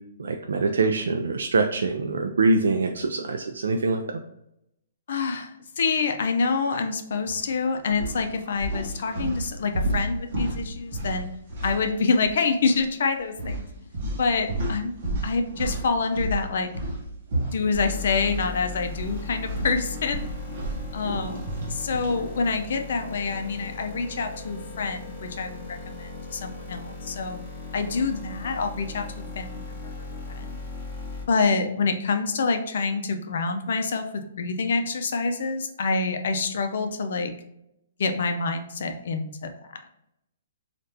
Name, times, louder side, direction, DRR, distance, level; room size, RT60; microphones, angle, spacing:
voice 1, 0.2-4.0, right 3 dB, 90° right, 4 dB, 0.3 m, -24 dB
voice 2, 5.1-11.3 11.6-13.7 14.2-14.9 15.2-16.7 17.5-20.3 20.9-27.4 27.7-30.6 31.3-34.1 34.4-37.3 38.0-39.8, left 4 dB, 60° left, 6 dB, 0.5 m, -27 dB
sound 1, 7.2-7.5 7.9-12.4 12.6-12.9 13.4-18.5 18.8-22.2, right 1 dB, 40° right, 0.9 m, -32 dB
sound 2, 17.7-31.3, left 3 dB, 20° left, 1.0 m, -38 dB
3.3 x 2.5 x 2.8 m, 0.81 s
hypercardioid pair, 170°, 0 cm